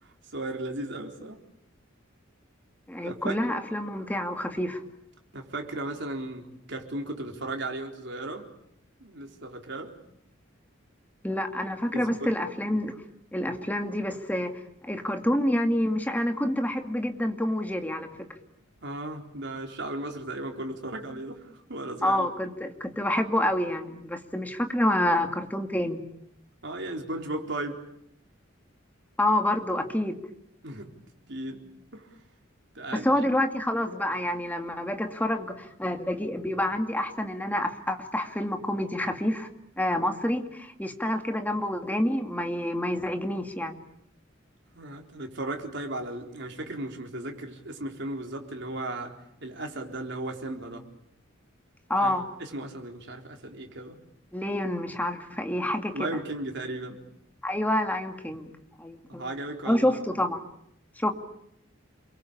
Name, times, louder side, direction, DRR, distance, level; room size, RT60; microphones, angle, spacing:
voice 1, 0.0-1.4 3.0-3.4 5.3-8.5 9.0-9.9 11.9-12.3 18.8-22.3 26.6-27.8 30.6-30.9 31.3-31.6 31.9-32.1 32.7-33.1 44.7-49.1 49.4-50.8 52.0-52.1 52.4-54.0 55.9-57.0 59.1-60.0, right 2 dB, 60° right, 3 dB, 4.1 m, -36 dB
voice 2, 2.9-4.8 11.2-13.0 13.3-14.5 14.8-18.1 22.0-26.0 29.2-30.2 33.0-39.5 39.8-43.8 51.9-52.3 54.3-56.2 57.4-58.5 58.8-59.3 59.6-60.4 61.0-61.1, left 1 dB, 10° left, 5 dB, 2.3 m, -28 dB
29.0 x 22.5 x 8.7 m, 0.74 s
head